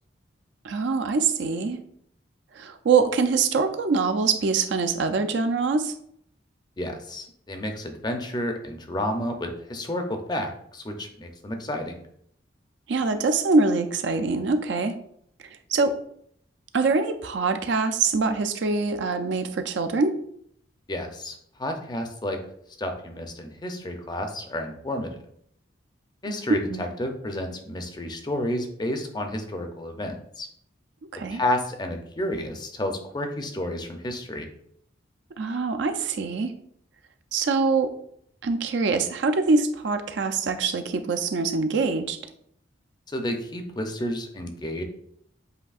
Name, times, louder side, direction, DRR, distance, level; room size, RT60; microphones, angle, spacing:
voice 1, 0.6-1.8 2.5-5.9 12.9-14.9 15.4-16.0 16.7-20.1 26.3-26.4 26.7-26.9 31.1-31.4 35.4-36.5 37.3-37.9 38.4-42.2, right 4 dB, 65° right, 7 dB, 0.4 m, -24 dB
voice 2, 6.8-12.0 20.9-22.4 22.8-25.2 26.2-30.5 31.2-34.5 43.1-44.8, left 1 dB, 20° left, 5 dB, 0.5 m, -31 dB
7.8 x 2.7 x 2.4 m, 0.68 s
head